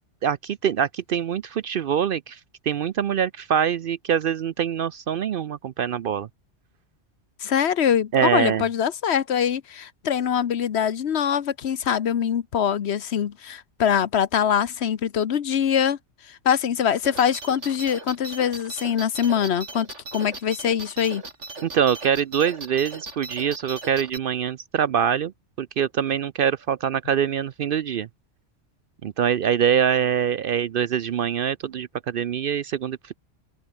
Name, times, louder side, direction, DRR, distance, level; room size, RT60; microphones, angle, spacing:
voice 1, 0.2-2.4 2.7-6.3 8.1-8.6 21.6-25.3 25.6-28.1 29.0-33.1, right 8 dB, 60° right, 0.6 m, -24 dB
voice 2, 7.4-16.0 16.3-21.2, left 8 dB, 65° left, 1.1 m, -23 dB
sound 1, 17.0-24.2, right 3 dB, 80° right, 3.8 m, -38 dB
open air
omnidirectional pair, 1.2 m